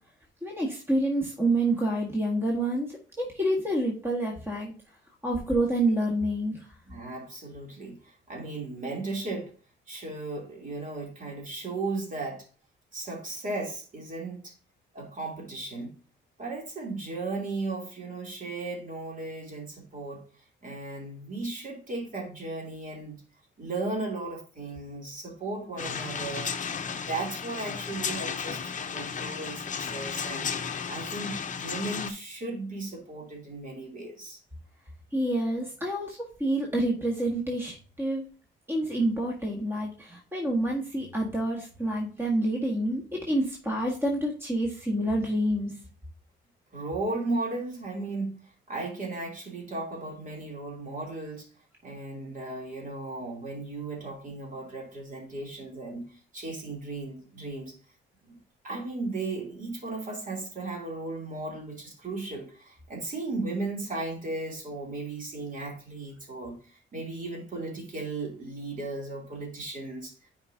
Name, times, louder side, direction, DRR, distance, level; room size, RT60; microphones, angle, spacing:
voice 1, 0.4-4.7 5.2-6.7 35.1-38.3 38.7-45.7, right 1 dB, 10° right, 1.7 m, -28 dB
voice 2, 6.9-9.5 9.9-12.5 12.9-14.5 14.9-15.9 16.4-20.2 20.6-23.2 23.6-26.6 26.9-34.4 46.7-51.5 51.8-57.7 58.3-58.4 58.6-70.3, right 2 dB, 40° right, 3.2 m, -36 dB
sound 1, 25.8-32.1, left 6 dB, 40° left, 0.8 m, -34 dB
9.5 x 5.0 x 2.8 m
cardioid pair, 90°, 20 cm